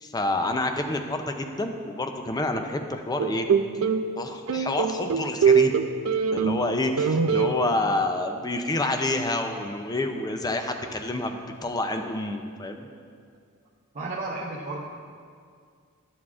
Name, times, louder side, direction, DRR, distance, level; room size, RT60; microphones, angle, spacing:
voice 1, 0.0-3.5 4.2-5.8 6.3-12.9, left 2 dB, 20° left, 5 dB, 0.5 m, -28 dB
sound 1, 3.2-4.0 4.5-6.7 7.0-7.5, right 6 dB, 70° right, 0.4 m, -22 dB
voice 2, 13.9-14.8, right 2 dB, 35° right, -6 dB, 0.7 m, -32 dB
12.5 x 7.1 x 2.4 m, 2.2 s
head